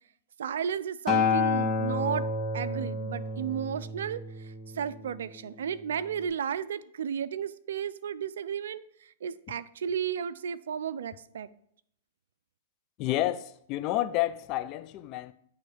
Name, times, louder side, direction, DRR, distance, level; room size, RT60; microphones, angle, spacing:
voice 1, 0.4-2.3 2.5-11.5, right 8 dB, 75° right, 0.4 m, -33 dB
Acoustic guitar, 1.1-5.4 6.2-6.3, left 4 dB, 20° left, 1.5 m, -30 dB
voice 2, 13.0-15.3, left 14 dB, 40° left, 0.5 m, -30 dB
9.3 x 3.1 x 4.8 m
hypercardioid pair, 120°, 0 cm